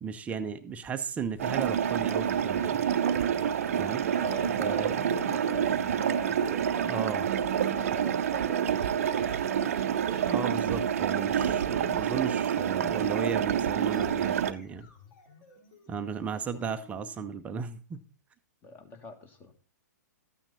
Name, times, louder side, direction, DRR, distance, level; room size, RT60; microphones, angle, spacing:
voice 1, 0.0-2.8 3.8-4.0 4.6-5.2 6.8-7.3 10.3-14.9 15.9-18.0, right 6 dB, 15° right, 8 dB, 0.7 m, -35 dB
sound 1, 1.2-17.3, left 4 dB, 35° left, 5.1 m, -54 dB
sound 2, 1.4-14.5, right 8 dB, 50° right, 0.7 m, -28 dB
voice 2, 4.2-9.7 16.5-16.7 18.6-19.5, left 2 dB, 20° left, 7 dB, 2.0 m, -44 dB
13.0 x 8.9 x 4.1 m, 0.36 s
figure-of-eight pair, 115°, 10 cm